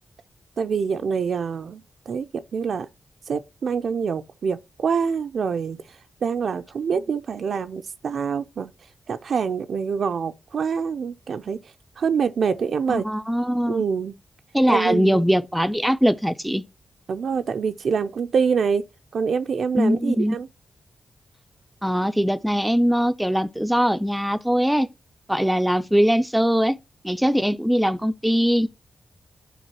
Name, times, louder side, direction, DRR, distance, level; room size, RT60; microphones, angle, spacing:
voice 1, 0.6-2.9 3.3-5.8 6.2-8.7 9.1-11.6 12.0-13.1 13.7-14.1 14.7-15.2 17.1-18.8 19.1-20.5, right 6 dB, 75° right, 0.4 m, -25 dB
voice 2, 12.9-13.8 14.5-16.6 19.7-20.4 21.8-24.9 25.3-26.8 27.0-28.7, equal, 5° right, 0.4 m, -21 dB
10.0 x 4.0 x 3.0 m
cardioid pair, 60°, 0 cm